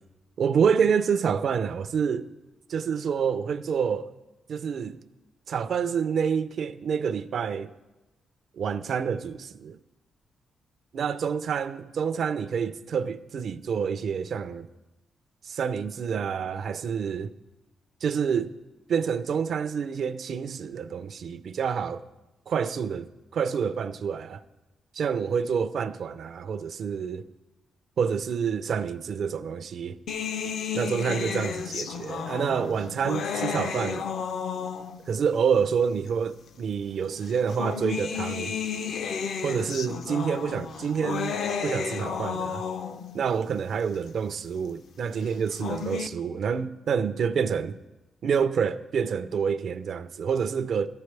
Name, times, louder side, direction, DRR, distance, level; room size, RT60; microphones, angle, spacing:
voice 1, 0.4-2.3 2.7-4.1 4.5-5.0 5.5-7.7 8.6-9.8 10.9-14.7 15.5-17.3 18.0-18.6 18.9-22.0 22.5-24.4 24.9-27.2 28.0-30.0 30.7-34.1 35.1-38.5 39.4-41.4 41.6-42.6 43.1-47.8 48.2-50.9, right 6 dB, 60° right, 0.4 m, -28 dB
sound 1, 30.1-35.2 36.1-36.2 37.3-43.2 45.3-46.1, left 6 dB, 70° left, 0.5 m, -32 dB
13.5 x 10.5 x 3.3 m
cardioid pair, 130°, 0 cm